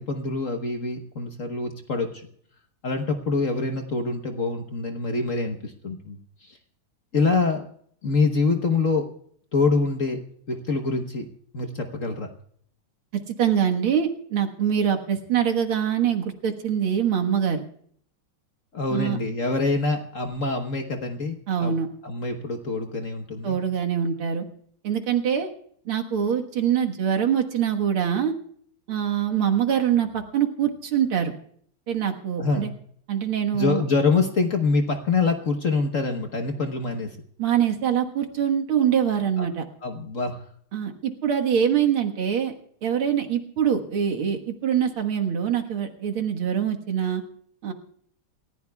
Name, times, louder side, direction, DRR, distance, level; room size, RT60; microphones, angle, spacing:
voice 1, 0.0-2.1 2.8-6.2 7.1-7.6 8.0-9.1 9.5-10.2 10.5-11.3 11.5-12.3 18.7-21.7 22.0-23.6 32.4-32.7 33.5-37.2 39.4-39.5 39.8-40.4, left 3 dB, 45° left, 5 dB, 1.2 m, -25 dB
voice 2, 13.4-17.6 18.9-19.2 21.5-21.9 23.4-24.4 24.8-25.5 25.9-28.3 28.9-31.3 31.9-32.7 33.1-33.8 37.4-39.7 40.7-42.5 42.8-47.2 47.6-47.7, right 8 dB, 80° right, 3 dB, 2.3 m, -24 dB
28.5 x 14.5 x 2.3 m, 0.62 s
omnidirectional pair, 2.3 m